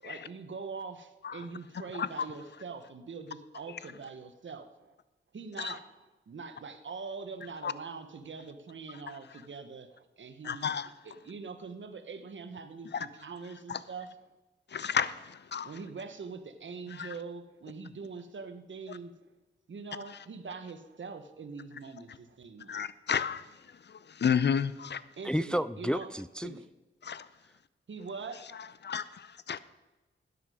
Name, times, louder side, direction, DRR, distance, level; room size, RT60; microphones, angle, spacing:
voice 1, 0.0-4.9 5.3-10.7 11.0-14.1 15.6-19.1 19.7-22.8 25.2-26.1 26.4-26.6 27.9-28.7, right 4 dB, 65° right, 9 dB, 1.1 m, -43 dB
voice 2, 10.4-10.9 12.9-13.1 13.7-13.8 14.7-15.7 17.0-17.1 18.9-19.0 22.7-23.5 23.9-25.0 27.0-27.3 28.8-29.6, left 7 dB, 55° left, 16 dB, 0.6 m, -31 dB
voice 3, 25.2-26.5, equal, 5° left, 16 dB, 0.4 m, -31 dB
13.0 x 9.6 x 4.9 m, 1.1 s
cardioid pair, 50°, 21 cm